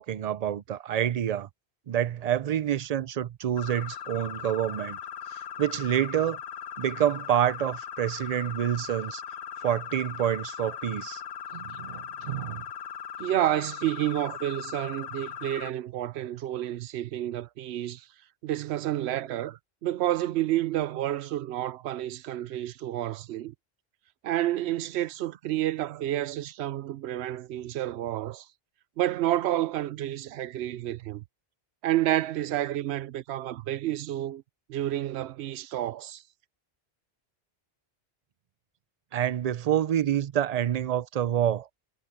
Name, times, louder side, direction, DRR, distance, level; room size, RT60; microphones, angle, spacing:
voice 1, 0.0-1.5 1.9-5.0 5.6-6.4 6.8-9.2 9.6-11.2 39.1-41.7, right 10 dB, 50° right, 0.5 m, -27 dB
sound 1, 3.6-15.7, left 9 dB, 65° left, 1.0 m, -39 dB
voice 2, 11.5-12.7 13.2-18.1 18.4-23.5 24.2-28.5 29.0-31.2 31.8-34.4 34.7-36.2, right 13 dB, 85° right, 0.8 m, -30 dB
omnidirectional pair, 1.1 m